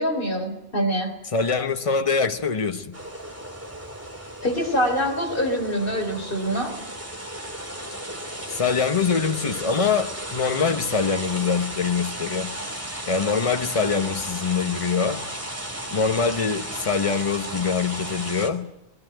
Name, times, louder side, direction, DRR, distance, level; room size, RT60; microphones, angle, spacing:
voice 1, 0.0-1.1 4.4-6.8, equal, 50° left, 4.0 m, -25 dB
voice 2, 1.3-3.0 8.5-12.5 13.1-15.3 15.9-18.7, left 5 dB, 30° left, 1.1 m, -24 dB
sound 1, 2.9-18.5, right 1 dB, 10° right, 2.7 m, -35 dB
20.5 x 16.0 x 9.2 m
omnidirectional pair, 1.2 m